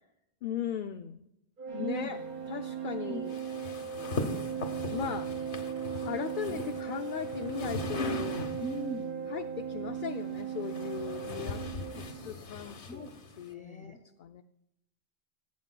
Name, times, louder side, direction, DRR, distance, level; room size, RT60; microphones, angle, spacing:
voice 1, 0.4-1.3 1.7-2.2 2.5-3.4 4.9-5.3 5.9-8.5 9.3-11.6 12.0-13.1 13.4-14.4, left 9 dB, 60° left, 8 dB, 0.6 m, -38 dB
Organ, 1.6-12.3, right 8 dB, 55° right, 0.8 m, -38 dB
sound 1, 1.7-11.9, right 3 dB, 80° right, 4.0 m, -47 dB
voice 2, 1.8-2.2 3.1-3.2 3.6-3.8 6.5-6.6 8.6-9.1 12.9-13.1 13.4-14.0, equal, 5° left, 1 dB, 1.9 m, -40 dB
sound 2, 3.3-8.9 10.0-13.5, left 4 dB, 85° left, 1.4 m, -40 dB
17.5 x 8.6 x 2.2 m, 0.83 s
omnidirectional pair, 1.1 m